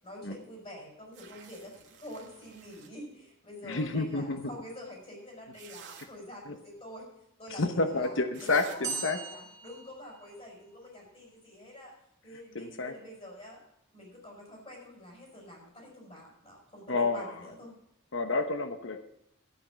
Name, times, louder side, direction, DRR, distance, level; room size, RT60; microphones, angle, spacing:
voice 1, 0.0-7.1 7.4-11.9 12.2-13.6 13.9-17.8, left 1 dB, 30° left, -2 dB, 5.4 m, -47 dB
sound 1, 1.1-2.9 5.0-5.1 5.5-6.1 8.0-8.1 8.3-8.8, right 7 dB, 60° right, 2.1 m, -51 dB
voice 2, 3.6-4.4 6.5-6.6 7.6-9.2 12.5-12.9 16.9-17.3 18.1-19.0, left 3 dB, 70° left, 8 dB, 1.0 m, -29 dB
sound 2, 8.8-10.8, right 4 dB, 15° right, 2.9 m, -39 dB
12.5 x 9.0 x 6.3 m, 0.80 s
head